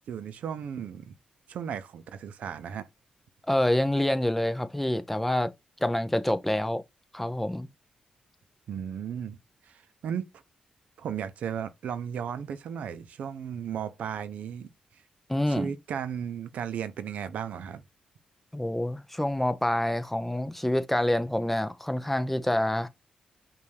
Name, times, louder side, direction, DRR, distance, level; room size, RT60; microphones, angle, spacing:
voice 1, 0.1-1.1 1.5-2.9 8.7-9.4 9.7-10.3 11.0-14.7 15.5-17.8, right 8 dB, 85° right, 0.6 m, -35 dB
voice 2, 3.5-5.5 5.8-6.8 7.1-7.7 15.3-15.7 18.5-22.9, left 1 dB, 5° left, 0.6 m, -27 dB
5.4 x 2.5 x 3.2 m
cardioid pair, 95°, 2 cm